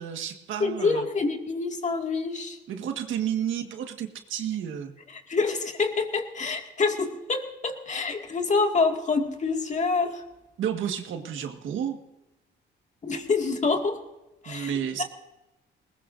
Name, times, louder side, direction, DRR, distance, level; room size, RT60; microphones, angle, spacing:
voice 1, 0.0-1.1 2.7-4.9 10.6-12.0 14.4-15.0, right 9 dB, 75° right, 6 dB, 1.7 m, -31 dB
voice 2, 0.6-2.6 5.1-10.2 13.0-14.0 14.4-14.7 15.0-15.1, left 4 dB, 35° left, 4 dB, 2.2 m, -26 dB
20.0 x 19.5 x 2.7 m, 1.0 s
cardioid pair, 90°, 20 cm